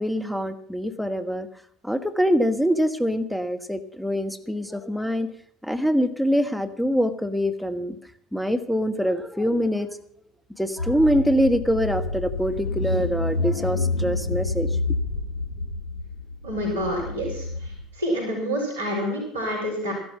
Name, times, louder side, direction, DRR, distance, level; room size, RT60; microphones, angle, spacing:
voice 1, 0.0-1.5 1.8-5.3 5.6-8.0 8.3-10.0 10.6-14.8, equal, ahead, 8 dB, 1.3 m, -24 dB
Car / Engine, 10.8-17.8, left 3 dB, 75° left, 1.9 m, -28 dB
voice 2, 16.4-17.5 18.0-19.9, equal, 80° right, 0 dB, 4.4 m, -27 dB
14.0 x 12.0 x 5.9 m, 0.64 s
figure-of-eight pair, 60°, 0 cm